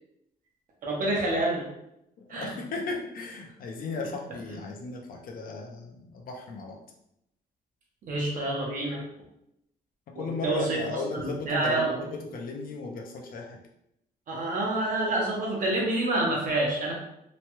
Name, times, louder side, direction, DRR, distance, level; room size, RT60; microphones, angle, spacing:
voice 1, 0.8-1.7 2.3-2.5 8.1-9.0 10.1-10.8 11.1-12.0 14.3-16.9, right 2 dB, 55° right, -2 dB, 0.9 m, -27 dB
voice 2, 2.3-6.8 10.1-13.6, left 3 dB, 60° left, 0 dB, 0.6 m, -36 dB
3.0 x 2.2 x 2.9 m, 0.80 s
cardioid pair, 155°, 16 cm